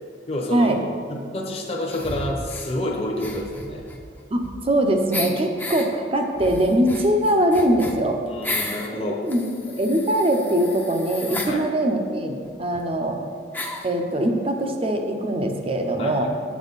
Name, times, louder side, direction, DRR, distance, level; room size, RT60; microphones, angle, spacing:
voice 1, 0.3-0.8 1.1-3.8 8.3-9.2 11.5-11.6 16.0-16.3, left 1 dB, 35° left, -1 dB, 0.9 m, -28 dB
sound 1, 1.9-2.7 3.2-4.8 5.1-5.9 6.4-8.9 9.3-11.5 12.4-12.5 12.7-12.8 13.5-13.9, left 2 dB, 10° left, 0.7 m, -33 dB
voice 2, 4.3-8.2 9.2-13.2 13.8-16.3, right 1 dB, 35° right, 4 dB, 0.8 m, -22 dB
8.1 x 7.2 x 4.0 m, 2.2 s
head